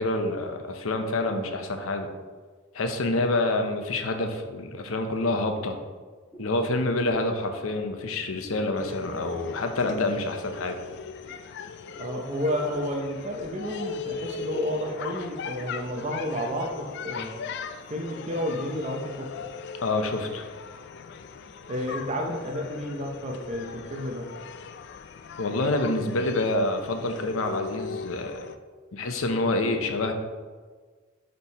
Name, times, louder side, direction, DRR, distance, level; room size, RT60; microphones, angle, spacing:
voice 1, 0.0-2.1 2.7-5.8 6.4-10.8 19.8-20.5 25.4-28.4 28.9-30.1, left 2 dB, 80° left, 6 dB, 0.7 m, -27 dB
sound 1, 6.3-6.6 7.0-7.3 7.7-7.9 8.4-8.6 9.1-9.3 9.8-10.0 10.5-10.7 11.2-11.4 11.9-12.1 12.7-12.8 13.4-13.5 13.8-14.2 14.7-14.9 15.5-15.6, right 2 dB, 10° left, 1.8 m, -50 dB
sound 2, 8.8-28.6, left 5 dB, 55° left, 0.3 m, -39 dB
voice 2, 12.0-17.4 17.9-19.3 21.7-24.3, equal, 35° right, 1 dB, 0.7 m, -31 dB
5.2 x 4.5 x 4.1 m, 1.5 s
head